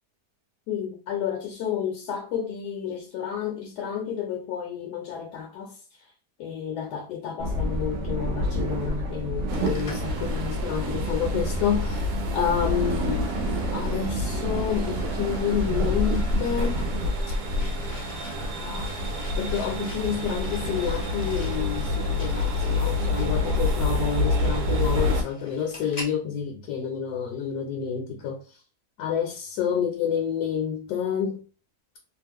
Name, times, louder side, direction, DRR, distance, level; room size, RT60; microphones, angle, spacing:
voice 1, 0.7-6.1 6.4-16.9 18.6-18.9 19.4-28.6 29.0-31.4, left 8 dB, 80° left, 1.2 m, -30 dB
sound 1, 7.4-17.1, equal, 65° right, 0.7 m, -29 dB
sound 2, 9.5-26.2, left 1 dB, 55° left, 0.3 m, -44 dB
sound 3, 9.5-25.2, left 2 dB, 85° right, 1.2 m, -28 dB
3.0 x 2.0 x 3.5 m
omnidirectional pair, 1.7 m